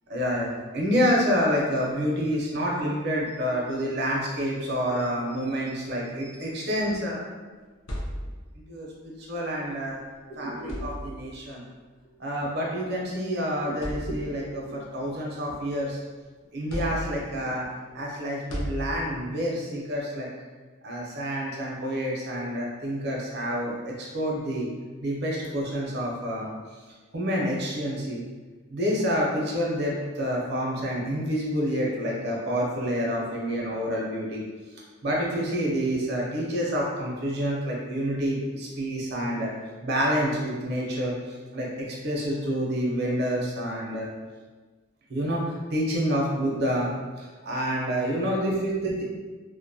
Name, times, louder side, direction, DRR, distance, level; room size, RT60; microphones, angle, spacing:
voice 1, 0.1-7.2 8.7-10.0 10.3-11.6 12.2-16.0 16.5-17.7 17.9-20.3 20.8-24.7 25.0-26.5 27.1-28.2 28.7-34.4 35.0-39.5 39.8-41.1 41.5-44.1 45.1-45.4 45.7-49.0, equal, 55° right, -3 dB, 0.5 m, -28 dB
sound 1, 7.5-8.7 9.9-10.1 10.6-11.4 12.5-12.7 13.2-13.3 13.7-14.6 15.1-16.1 16.7-17.5 18.5-19.4, equal, 70° left, 0.5 m, -35 dB
2.5 x 2.1 x 2.6 m, 1.3 s
head